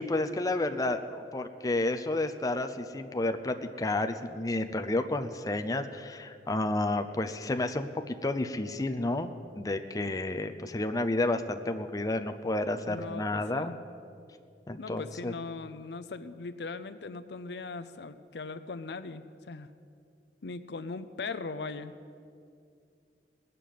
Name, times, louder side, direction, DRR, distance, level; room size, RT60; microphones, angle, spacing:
voice 1, 0.0-13.7 14.7-15.3, left 2 dB, 20° left, 6 dB, 0.6 m, -31 dB
voice 2, 12.7-13.8 14.8-19.7 20.4-21.9, left 4 dB, 70° left, 12 dB, 0.6 m, -39 dB
19.0 x 6.7 x 9.3 m, 2.4 s
head